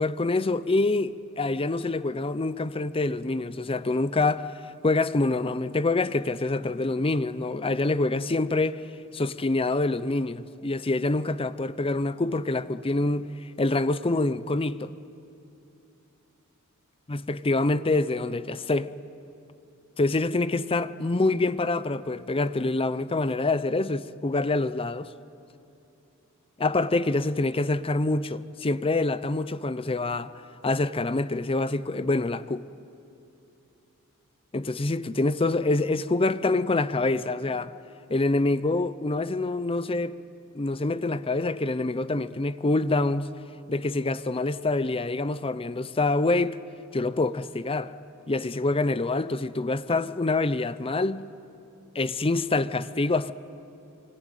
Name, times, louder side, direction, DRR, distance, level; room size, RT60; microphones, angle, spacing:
voice 1, 0.0-4.5 4.8-8.8 9.1-13.3 13.6-14.9 17.1-18.9 20.0-25.1 26.6-30.3 30.6-32.7 34.5-37.7 38.1-40.2 40.5-43.3 43.7-46.6 46.9-47.9 48.3-51.2 51.9-53.3, left 2 dB, 25° left, 0.6 m, -26 dB
26.0 x 24.0 x 9.1 m
head